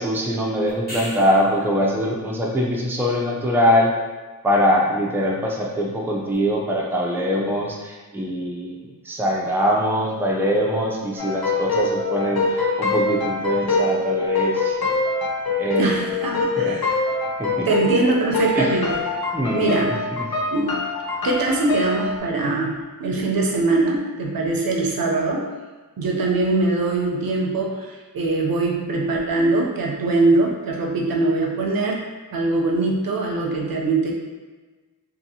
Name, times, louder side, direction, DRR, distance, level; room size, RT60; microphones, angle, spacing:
voice 1, 0.0-3.9 4.4-14.8 15.6-16.1 16.6-16.8 17.4-17.7 18.6-18.7 19.3-20.3, equal, 5° right, -2 dB, 0.4 m, -23 dB
sound 1, 0.7-1.7 6.3-6.4, equal, 25° left, 1.0 m, -34 dB
sound 2, 11.2-22.2, left 3 dB, 85° left, 0.6 m, -24 dB
voice 2, 15.8-16.9 17.7-19.0 19.5-20.0 20.5-20.8 21.2-25.5 26.0-32.0 32.3-34.1, right 2 dB, 75° right, -1 dB, 0.6 m, -22 dB
2.6 x 2.6 x 2.7 m, 1.3 s
wide cardioid pair, 95°, 36 cm